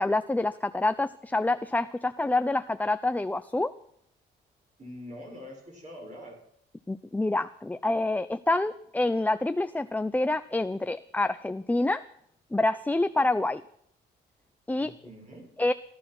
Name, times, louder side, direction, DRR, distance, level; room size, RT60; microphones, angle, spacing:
voice 1, 0.0-3.7 6.9-12.0 12.5-13.6 14.7-14.9 15.6-15.7, left 2 dB, 10° left, 11 dB, 0.5 m, -27 dB
voice 2, 4.8-6.4 14.8-15.5, left 1 dB, 35° right, 0 dB, 6.3 m, -44 dB
16.0 x 12.0 x 6.1 m, 0.70 s
cardioid pair, 90°, 20 cm